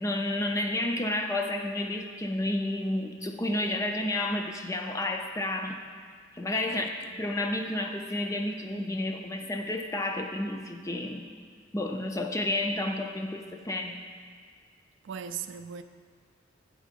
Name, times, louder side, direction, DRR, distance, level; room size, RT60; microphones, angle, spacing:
voice 1, 0.0-5.8 6.3-6.9 7.2-11.3 11.7-14.0, left 1 dB, 15° left, 0.4 m, -31 dB
voice 2, 6.7-7.2 15.0-15.8, right 8 dB, 65° right, 0.3 m, -39 dB
9.0 x 3.7 x 5.1 m
head